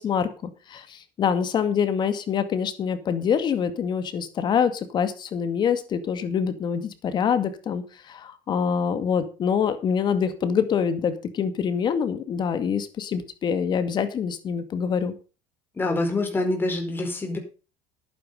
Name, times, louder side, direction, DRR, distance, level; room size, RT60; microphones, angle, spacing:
voice 1, 0.0-15.1, left 7 dB, 40° left, 11 dB, 2.2 m, -25 dB
voice 2, 15.8-17.4, left 2 dB, 15° left, 4 dB, 4.6 m, -25 dB
11.0 x 9.8 x 5.3 m, 0.34 s
cardioid pair, 130°, 12 cm